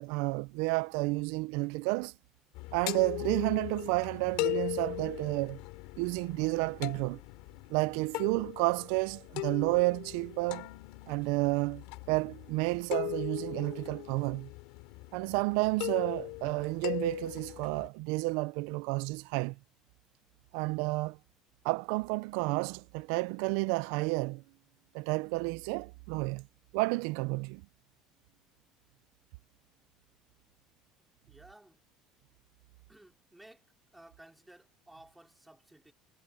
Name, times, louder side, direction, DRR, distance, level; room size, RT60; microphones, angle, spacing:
voice 1, 0.0-2.1 2.7-5.6 6.0-7.2 7.7-10.7 11.1-14.5 15.1-19.5 20.5-21.2 21.6-24.4 24.9-26.4 26.7-27.6, right 25 dB, 85° right, 0.4 m, -31 dB
sound 1, 2.5-17.9, left 24 dB, 85° left, 2.8 m, -39 dB
voice 2, 31.3-31.8 32.9-33.7 33.9-35.9, right 1 dB, 5° right, 4.0 m, -56 dB
cardioid pair, 135°, 0 cm